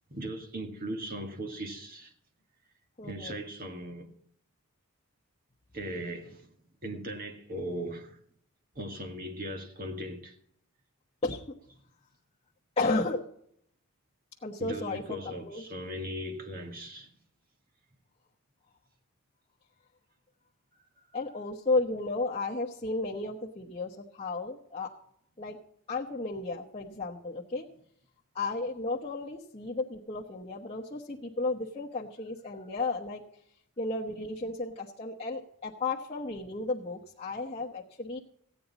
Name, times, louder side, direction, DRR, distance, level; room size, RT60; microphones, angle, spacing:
voice 1, 0.1-2.1 3.0-4.1 5.7-6.5 6.8-8.2 8.7-10.3 14.6-17.1, right 1 dB, 40° right, 1.7 m, -38 dB
voice 2, 3.0-3.4 11.2-11.5 12.8-13.2 14.4-15.2 15.4-15.6 21.1-24.9 25.4-25.6 25.9-27.7 28.3-33.2 33.8-38.2, left 3 dB, 25° left, 1.0 m, -33 dB
15.5 x 9.4 x 4.1 m
head